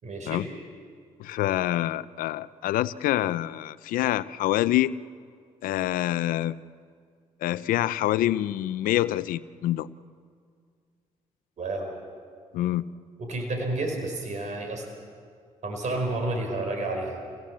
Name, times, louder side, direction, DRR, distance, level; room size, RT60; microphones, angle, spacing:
voice 1, 0.0-0.5 11.6-11.9 13.2-14.9 15.6-17.2, right 2 dB, 60° right, 3 dB, 4.7 m, -30 dB
voice 2, 1.2-4.9 5.6-6.6 7.4-9.9 12.5-12.8, left 14 dB, 85° left, 17 dB, 0.6 m, -26 dB
28.0 x 17.5 x 7.5 m, 2.1 s
supercardioid pair, 60°, 14 cm